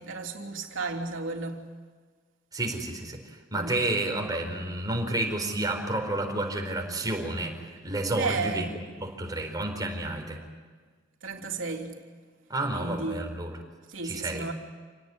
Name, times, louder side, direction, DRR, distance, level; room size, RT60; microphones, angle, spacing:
voice 1, 0.0-1.6 3.5-3.7 8.2-8.7 11.2-12.0 12.7-13.3 13.9-14.5, right 4 dB, 85° right, 3.3 m, -33 dB
voice 2, 2.5-7.6 7.8-8.7 9.0-10.4 12.5-13.5 14.0-14.5, right 2 dB, 20° right, 4.5 m, -30 dB
27.5 x 18.5 x 9.8 m
head